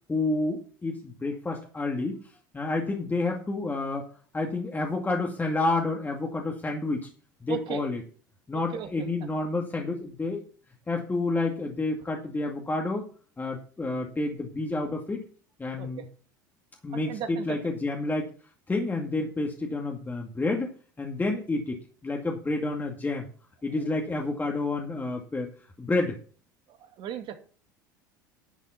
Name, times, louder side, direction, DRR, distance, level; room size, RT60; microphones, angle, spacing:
voice 1, 0.1-2.2 2.5-4.1 4.3-7.1 7.4-8.0 8.5-10.4 10.9-13.1 13.4-15.2 15.6-16.0 16.8-18.3 18.7-20.7 21.0-21.8 22.0-23.3 23.6-25.5 25.8-26.2, left 2 dB, 15° left, 1 dB, 2.2 m, -29 dB
voice 2, 7.5-7.8 8.5-9.1 15.8-16.1 17.0-17.6 26.8-27.3, right 8 dB, 50° right, 7 dB, 2.3 m, -36 dB
11.5 x 7.2 x 5.9 m, 0.41 s
hypercardioid pair, 75°, 10 cm